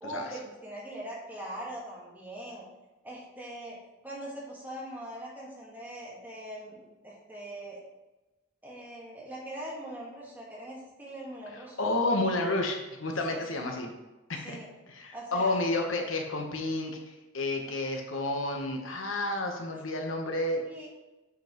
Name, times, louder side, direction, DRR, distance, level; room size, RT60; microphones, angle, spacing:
voice 1, 0.0-2.6 3.0-3.8 4.0-7.8 8.6-11.8 13.3-13.6 14.4-14.7 15.1-15.6 19.7-19.8 20.6-20.9, right 1 dB, 10° right, -5 dB, 1.5 m, -42 dB
voice 2, 11.8-13.9 14.3-14.6 14.9-17.0 17.3-20.6, left 2 dB, 85° left, 2 dB, 1.1 m, -30 dB
8.3 x 5.3 x 3.0 m, 1.1 s
head